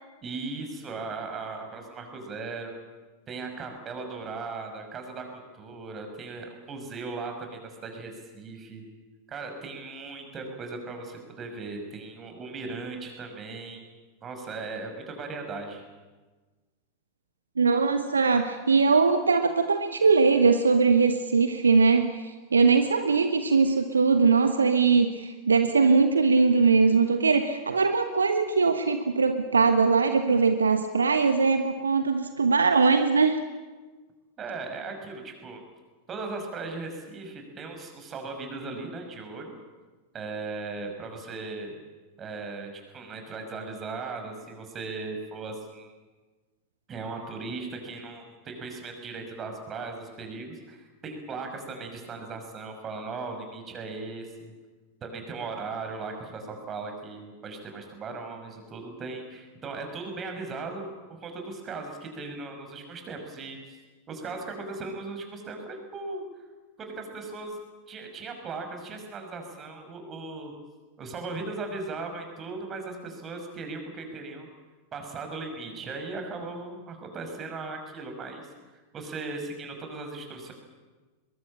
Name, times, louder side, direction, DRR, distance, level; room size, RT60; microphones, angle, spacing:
voice 1, 0.2-2.8 3.3-5.3 5.5-8.8 9.3-13.9 14.2-15.8 34.4-35.6 36.1-39.6 40.1-41.8 42.2-45.9 46.9-54.5 55.0-63.8 64.1-66.2 66.8-67.6 67.9-70.5 71.0-74.5 74.9-78.5 78.9-80.5, right 3 dB, 25° right, 4 dB, 6.0 m, -37 dB
voice 2, 17.6-33.4, right 4 dB, 75° right, 8 dB, 1.2 m, -21 dB
22.5 x 22.5 x 8.8 m, 1.3 s
figure-of-eight pair, 90°, 0 cm